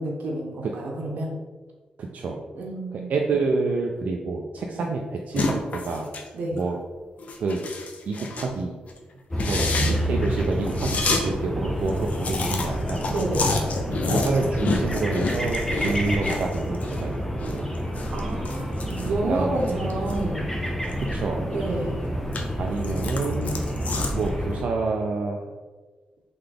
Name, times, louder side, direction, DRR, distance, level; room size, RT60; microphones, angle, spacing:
voice 1, 0.0-1.3 2.5-3.2 4.7-4.9 6.3-6.6 9.4-9.9 13.1-13.5 18.1-20.6 21.5-22.1, right 2 dB, 85° right, -1 dB, 0.9 m, -29 dB
voice 2, 2.0-2.4 3.1-6.1 6.5-6.8 7.4-7.7 8.1-8.7 9.4-13.1 14.1-17.7 19.3-19.9 21.0-21.4 22.6-23.6 24.1-25.4, right 4 dB, 65° right, 1 dB, 0.4 m, -28 dB
sound 1, 5.3-6.3 6.6-6.8 7.2-8.5 8.9-9.0 9.3-11.2 11.6-11.7 11.8-17.0 17.3-20.2 20.6-21.6 22.0-24.3, left 3 dB, 55° left, 0.5 m, -30 dB
sound 2, 9.3-24.6, equal, 10° left, 0.5 m, -29 dB
3.9 x 3.3 x 3.4 m, 1.3 s
wide cardioid pair, 135°, 3 cm